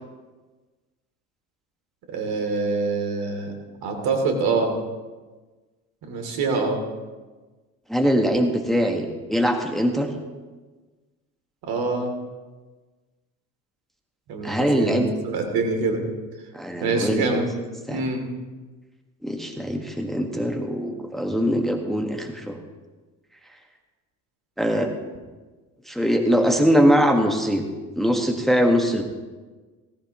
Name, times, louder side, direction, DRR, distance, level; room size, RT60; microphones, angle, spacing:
voice 1, 2.1-3.5 3.8-4.7 6.1-6.8 11.6-12.1 14.3-16.0 16.8-17.5 17.9-18.2, right 3 dB, 60° right, 3 dB, 2.9 m, -25 dB
voice 2, 7.9-10.1 14.4-15.1 16.5-17.3 17.9-18.0 19.2-22.6 24.6-24.9 25.9-27.7 27.9-29.0, equal, ahead, 3 dB, 1.5 m, -22 dB
17.5 x 15.0 x 3.0 m, 1.3 s
hypercardioid pair, 60°, 42 cm